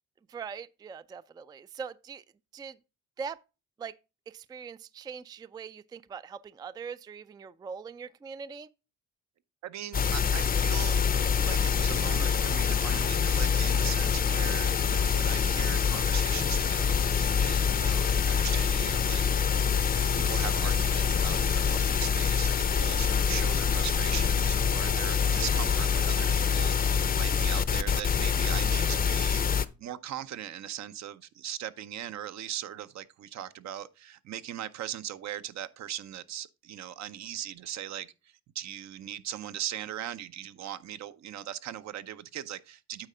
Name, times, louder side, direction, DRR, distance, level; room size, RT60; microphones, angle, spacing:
voice 1, 0.3-2.2 2.5-2.8 3.2-3.4 3.8-4.0 4.3-8.7, right 6 dB, 15° right, 0.3 m, -41 dB
voice 2, 9.6-11.0 11.4-19.8 20.1-29.4 29.8-38.1 38.5-43.1, right 11 dB, 60° right, 0.7 m, -39 dB
sound 1, 9.9-29.7, left 6 dB, 30° left, 0.6 m, -26 dB
8.8 x 4.1 x 5.5 m
cardioid pair, 90°, 30 cm